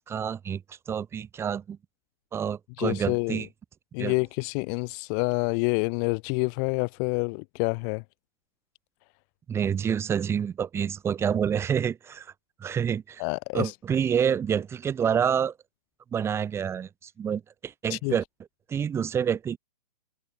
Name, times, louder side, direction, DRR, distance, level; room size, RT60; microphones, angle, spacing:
voice 1, 0.1-1.8 2.3-3.5 4.0-4.1 9.5-12.3 12.6-13.2 13.5-15.5 16.1-18.2 18.7-19.6, right 8 dB, 10° right, 3.8 m, -28 dB
voice 2, 2.8-3.4 3.9-8.0 13.2-13.7 17.9-18.1, left 40 dB or more, 25° left, 1.6 m, -28 dB
hypercardioid pair, 160°, 21 cm